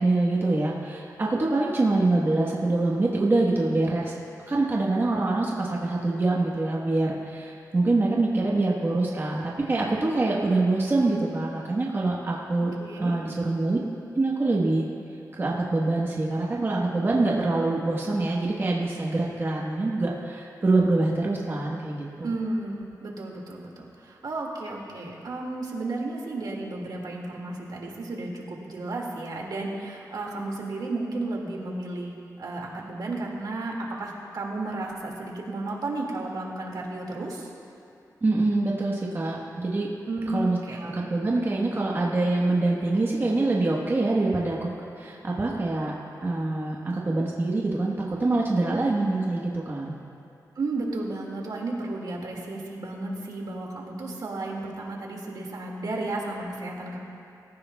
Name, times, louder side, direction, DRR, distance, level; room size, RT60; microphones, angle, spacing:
voice 1, 0.0-4.1 4.5-12.7 13.0-13.8 14.1-14.8 15.4-22.3 38.2-39.9 40.3-45.9 46.2-50.0, right 2 dB, 35° right, -3 dB, 1.2 m, -25 dB
voice 2, 12.8-13.2 22.2-37.5 40.1-40.9 50.6-57.0, right 2 dB, 75° right, -1 dB, 2.1 m, -33 dB
24.0 x 14.5 x 2.3 m, 2.7 s
wide cardioid pair, 165°, 7 cm